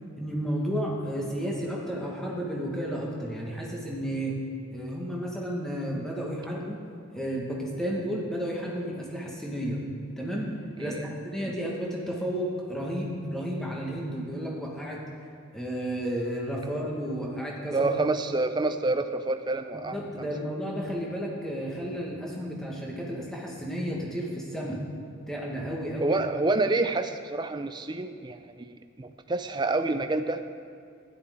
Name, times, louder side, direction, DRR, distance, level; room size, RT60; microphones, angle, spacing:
voice 1, 0.2-4.4 4.7-6.8 7.1-9.8 10.2-15.0 15.5-17.9 19.7-24.8 25.3-26.2, equal, ahead, -3 dB, 1.4 m, -32 dB
voice 2, 17.7-20.3 26.0-30.4, right 2 dB, 20° right, 8 dB, 0.4 m, -28 dB
12.5 x 10.5 x 3.6 m, 2.3 s
head